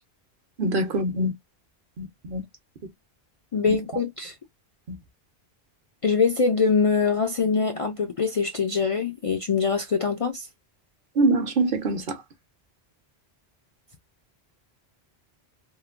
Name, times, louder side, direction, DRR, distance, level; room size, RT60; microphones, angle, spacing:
voice 1, 0.6-1.3 2.0-2.4 3.7-3.8 4.9-5.0 11.2-12.2, right 2 dB, 60° right, 0.8 m, -24 dB
voice 2, 3.5-4.3 6.0-10.5, left 5 dB, 55° left, 0.3 m, -23 dB
3.1 x 2.1 x 2.3 m
omnidirectional pair, 1.1 m